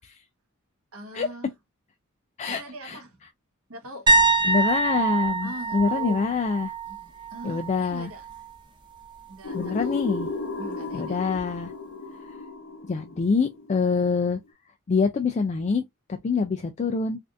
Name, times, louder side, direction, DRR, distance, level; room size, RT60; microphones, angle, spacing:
voice 1, 0.9-1.5 2.5-3.2 3.7-4.0 4.4-4.5 5.4-6.3 7.0-8.2 9.3-10.0 10.6-11.2, right 1 dB, 85° right, 1.2 m, -41 dB
voice 2, 2.4-3.3 4.4-6.7 7.4-8.1 9.5-10.3 10.9-11.7 12.9-14.4 14.9-15.8 16.1-17.2, left 5 dB, 30° left, 0.3 m, -25 dB
sound 1, 4.1-7.8 8.1-8.5 11.4-11.5, right 3 dB, 20° right, 0.9 m, -24 dB
sound 2, 9.4-14.2, left 3 dB, 65° left, 0.7 m, -35 dB
3.4 x 2.5 x 2.4 m
head